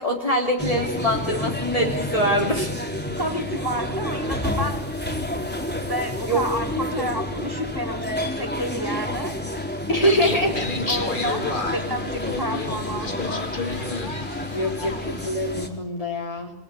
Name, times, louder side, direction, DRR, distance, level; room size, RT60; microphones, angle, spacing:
voice 1, 0.0-2.7 6.3-6.4 7.0-7.1 9.9-10.6 14.1-14.2 14.5-16.5, equal, 30° left, 0 dB, 3.2 m, -24 dB
sound 1, 0.6-15.7, left 1 dB, 10° left, 3.9 m, -29 dB
voice 2, 3.2-4.9 5.9-9.3 10.9-13.5, equal, 20° right, 3 dB, 4.4 m, -30 dB
sound 2, 10.0-15.3, left 3 dB, 50° left, 2.3 m, -31 dB
28.0 x 21.0 x 9.9 m, 0.78 s
omnidirectional pair, 1.1 m